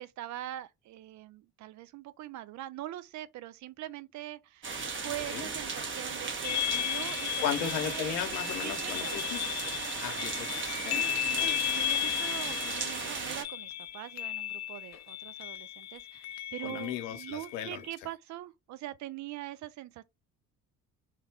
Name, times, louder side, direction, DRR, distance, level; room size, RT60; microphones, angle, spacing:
voice 1, 0.0-4.7 5.0-8.2 8.6-9.2 10.9-20.0, right 14 dB, 40° right, 0.4 m, -43 dB
sound 1, 4.6-13.4, right 5 dB, 25° right, 0.8 m, -36 dB
sound 2, 6.4-17.9, left 13 dB, 35° left, 0.4 m, -35 dB
voice 2, 7.4-9.5 9.8-11.1 11.3-11.6 16.6-17.8, left 9 dB, 70° left, 0.9 m, -36 dB
3.1 x 2.2 x 3.5 m
hypercardioid pair, 50°, 46 cm